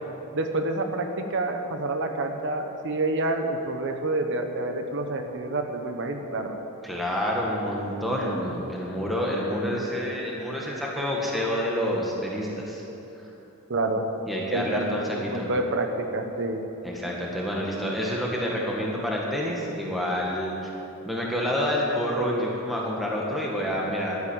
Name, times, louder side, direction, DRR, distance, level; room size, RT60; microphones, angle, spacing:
voice 1, 0.3-6.6 13.7-14.0 14.5-16.6, right 2 dB, 55° right, 5 dB, 1.1 m, -28 dB
voice 2, 6.8-12.8 14.3-15.5 16.8-20.7 21.1-24.2, equal, ahead, -3 dB, 1.8 m, -28 dB
12.0 x 10.0 x 8.8 m, 3.0 s
head